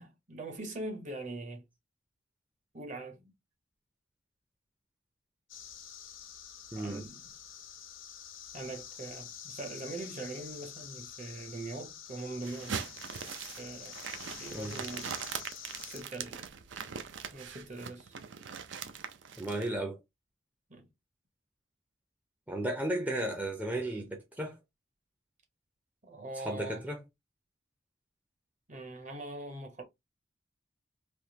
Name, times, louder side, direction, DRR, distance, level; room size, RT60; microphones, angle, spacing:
voice 1, 0.0-1.6 2.7-3.3 6.8-7.3 8.5-12.9 13.6-14.0 14.4-15.1 15.9-16.4 17.3-18.2 20.7-20.9 26.0-26.8 28.7-29.8, right 2 dB, 40° right, 0.9 m, -42 dB
sound 1, 5.5-16.0, left 9 dB, 80° left, 0.8 m, -47 dB
voice 2, 6.7-7.0 14.5-14.8 19.4-20.0 22.5-24.6 26.4-27.0, right 1 dB, 10° right, 0.5 m, -34 dB
sound 2, 12.4-19.7, right 7 dB, 65° right, 0.5 m, -41 dB
3.5 x 2.7 x 2.7 m
head